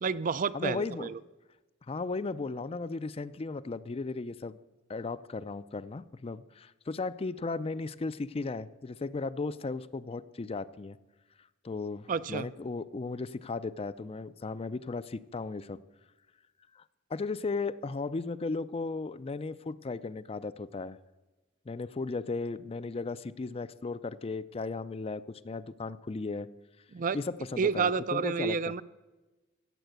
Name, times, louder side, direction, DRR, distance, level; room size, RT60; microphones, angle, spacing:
voice 1, 0.0-1.2 12.1-12.5 26.9-27.2 27.6-28.8, right 5 dB, 45° right, 16 dB, 0.4 m, -30 dB
voice 2, 0.5-1.1 1.9-4.6 4.9-11.0 11.6-15.8 16.8-16.9 17.1-21.0 21.7-26.5 27.1-28.7, left 3 dB, 30° left, 15 dB, 0.4 m, -36 dB
15.5 x 7.9 x 8.0 m, 1.1 s
head